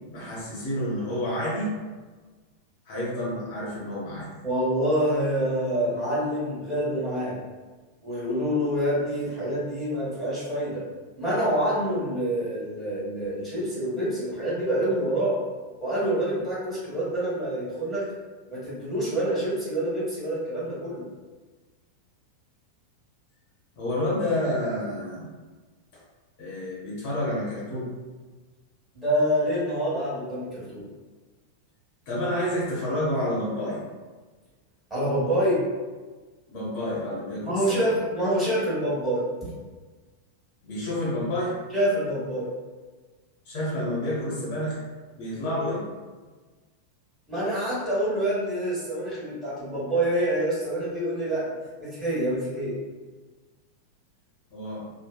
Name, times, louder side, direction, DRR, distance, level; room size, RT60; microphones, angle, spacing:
voice 1, 0.1-1.7 2.9-4.3 23.8-25.3 26.4-27.9 32.1-33.8 36.5-37.9 40.6-41.6 43.4-44.8 45.1-45.8 54.5-54.8, left 1 dB, 45° left, -7 dB, 0.8 m, -29 dB
voice 2, 4.4-7.3 8.0-10.8 11.2-15.4 15.8-18.1 18.5-21.0 28.9-30.8 34.9-35.6 37.4-39.5 41.7-42.5 47.3-51.4 51.8-52.8, right 1 dB, 10° right, -9 dB, 1.3 m, -26 dB
2.7 x 2.1 x 2.2 m, 1.3 s
figure-of-eight pair, 90°, 0 cm